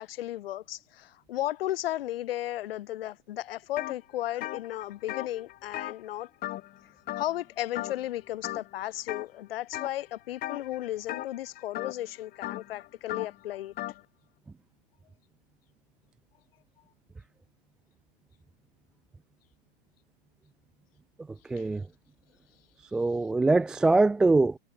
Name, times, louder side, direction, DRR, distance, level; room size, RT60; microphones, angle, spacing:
voice 1, 0.0-6.3 7.2-13.7, left 14 dB, 55° left, 7.1 m, -34 dB
sound 1, 3.8-4.0 4.3-6.8 7.1-7.4 7.7-8.1 8.4-9.2 9.7-10.0 10.4-14.0, left 15 dB, 25° left, 4.0 m, -37 dB
voice 2, 21.5-21.8 22.9-24.6, right 3 dB, ahead, 0.3 m, -23 dB
hypercardioid pair, 135°, 34 cm